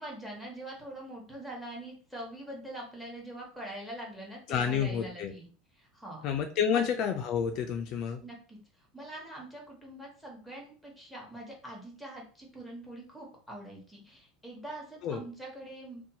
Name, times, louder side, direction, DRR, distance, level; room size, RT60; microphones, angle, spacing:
voice 1, 0.0-5.5 5.8-6.2 6.7-6.8 8.2-8.6 8.9-16.0, right 1 dB, ahead, -1 dB, 1.0 m, -44 dB
voice 2, 4.5-5.3 6.2-8.2 15.0-15.2, left 7 dB, 50° left, 5 dB, 0.3 m, -29 dB
2.7 x 2.2 x 2.8 m, 0.40 s
supercardioid pair, 140°, 0 cm